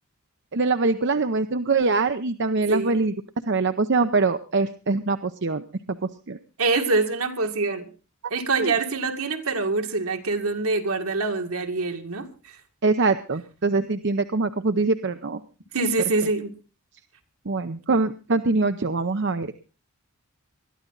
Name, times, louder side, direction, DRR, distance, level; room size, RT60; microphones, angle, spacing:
voice 1, 0.5-3.1 3.5-5.6 6.0-6.4 8.6-8.7 12.8-15.4 17.5-19.5, right 3 dB, 55° right, 0.7 m, -23 dB
voice 2, 2.7-3.0 6.6-7.9 8.3-12.3 15.7-16.5, right 3 dB, 75° right, 2.1 m, -25 dB
21.5 x 13.0 x 3.9 m
head